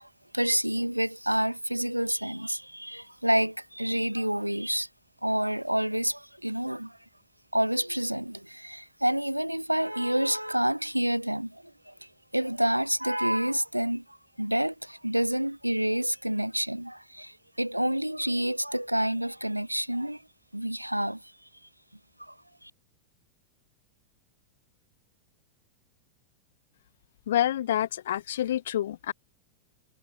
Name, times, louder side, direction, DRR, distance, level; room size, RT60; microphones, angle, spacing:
voice 1, 0.0-4.9 5.2-7.0 7.5-20.2 20.5-21.2 22.2-22.3 22.6-22.7, right 1 dB, 90° right, 0.6 m, -28 dB
voice 2, 27.3-29.1, left 11 dB, 60° left, 0.4 m, -27 dB
figure-of-eight pair, 90°, 0 cm